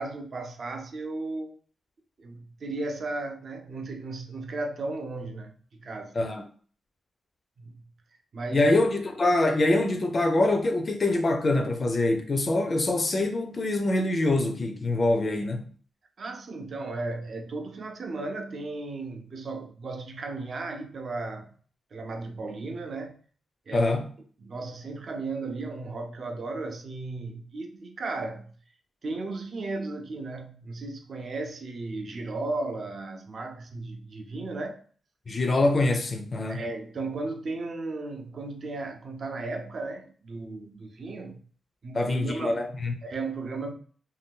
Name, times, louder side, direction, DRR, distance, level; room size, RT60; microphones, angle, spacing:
voice 1, 0.0-1.6 2.2-6.1 7.6-7.8 8.3-8.8 16.2-21.5 21.9-23.2 23.7-23.9 24.4-28.5 29.0-34.8 36.5-41.4 41.8-42.7 43.0-43.7, right 3 dB, 45° right, 0.5 m, -35 dB
voice 2, 8.5-15.7 23.7-24.1 35.3-36.6 41.9-42.9, left 2 dB, 30° left, 0.4 m, -24 dB
2.6 x 2.2 x 3.6 m
wide cardioid pair, 160°, 0 cm